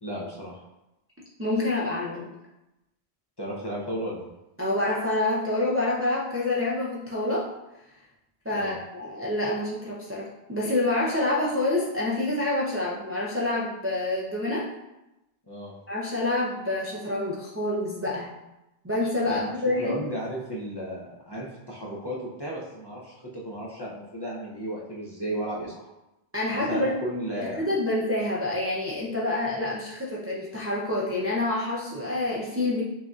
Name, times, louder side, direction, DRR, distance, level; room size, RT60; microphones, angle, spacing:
voice 1, 0.0-0.6 3.4-4.3 8.5-8.8 15.5-15.7 19.2-25.9 26.5-27.6, equal, 30° left, -6 dB, 0.5 m, -34 dB
voice 2, 1.4-2.3 4.6-7.5 8.4-14.7 15.9-18.3 18.8-20.0 26.3-27.0 27.4-32.8, left 2 dB, 20° right, -5 dB, 0.3 m, -27 dB
5.8 x 2.7 x 2.4 m, 0.95 s
omnidirectional pair, 1.1 m